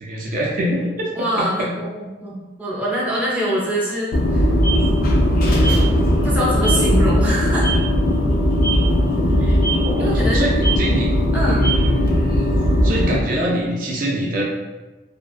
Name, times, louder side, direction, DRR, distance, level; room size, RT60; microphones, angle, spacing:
voice 1, 0.0-1.7 5.5-5.8 9.8-11.1 11.5-12.1 12.8-14.4, right 1 dB, 50° right, -3 dB, 0.4 m, -24 dB
voice 2, 1.1-4.5 6.2-7.7 9.4-9.6 10.0-10.4 11.3-11.7, equal, 10° right, -7 dB, 0.6 m, -24 dB
sound 1, 4.1-13.2, equal, 55° left, 0.4 m, -18 dB
2.5 x 2.3 x 2.3 m, 1.2 s
head